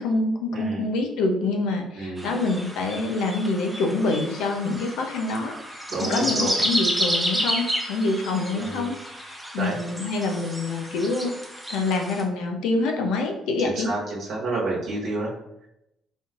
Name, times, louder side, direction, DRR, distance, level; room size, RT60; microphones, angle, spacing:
voice 1, 0.0-11.3 11.7-13.9, left 3 dB, 90° left, 3 dB, 0.6 m, -26 dB
voice 2, 0.5-0.8 1.9-2.4 5.9-6.6 8.5-8.9 9.6-9.8 13.6-15.3, right 2 dB, 70° right, -6 dB, 1.1 m, -30 dB
sound 1, 2.2-12.2, equal, 5° right, 0.6 m, -30 dB
4.1 x 3.2 x 2.4 m, 0.85 s
cardioid pair, 105°, 0 cm